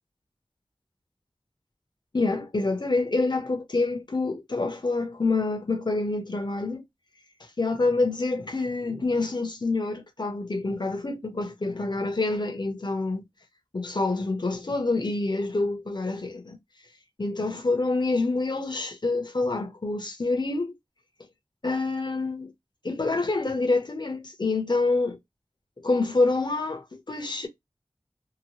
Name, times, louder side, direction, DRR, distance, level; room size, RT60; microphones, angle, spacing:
voice 1, 2.1-6.8 7.6-13.2 13.7-16.6 17.2-20.7 21.6-22.5 22.8-25.2 25.8-27.5, left 3 dB, 50° left, 0.9 m, -27 dB
2.9 x 2.3 x 2.9 m
wide cardioid pair, 50°, 9 cm